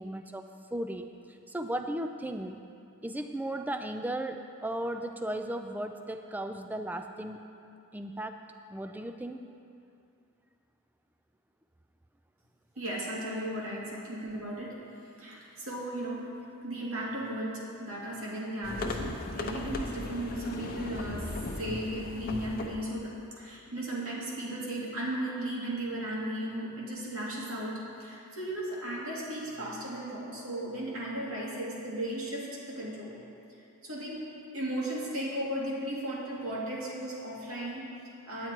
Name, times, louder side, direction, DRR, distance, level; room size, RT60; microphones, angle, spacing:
voice 1, 0.0-2.6 3.0-7.4 7.9-8.4 8.7-9.5, right 1 dB, 10° right, 7 dB, 0.3 m, -36 dB
voice 2, 12.8-16.3 16.6-21.3 21.6-33.2 33.8-34.2 34.5-38.5, right 1 dB, 75° right, -5 dB, 2.2 m, -36 dB
sound 1, 18.6-22.8, left 2 dB, 40° left, 0.7 m, -37 dB
9.6 x 9.2 x 4.5 m, 2.6 s
head